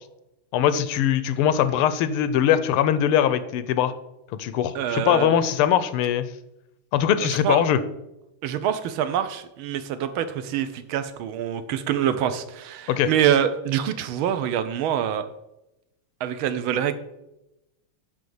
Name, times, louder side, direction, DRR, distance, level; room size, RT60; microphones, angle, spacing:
voice 1, 0.5-3.9 4.4-6.2 6.9-7.8 12.9-13.1, left 10 dB, 85° left, 13 dB, 1.5 m, -21 dB
voice 2, 4.7-5.4 7.2-7.6 8.4-15.3 16.2-16.9, right 9 dB, 75° right, 11 dB, 1.5 m, -25 dB
9.2 x 3.6 x 7.0 m, 0.89 s
omnidirectional pair, 2.4 m